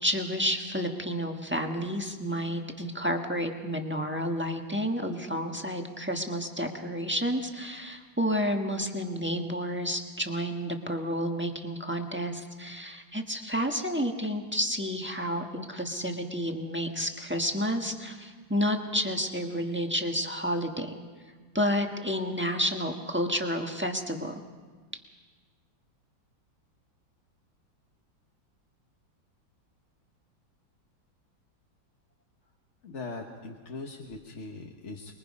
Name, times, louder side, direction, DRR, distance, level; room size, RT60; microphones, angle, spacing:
voice 1, 0.0-20.9 21.5-24.4, equal, 5° right, 3 dB, 1.2 m, -30 dB
voice 2, 32.8-35.1, left 3 dB, 40° left, 1 dB, 1.4 m, -40 dB
24.5 x 22.0 x 5.4 m, 1.5 s
omnidirectional pair, 2.1 m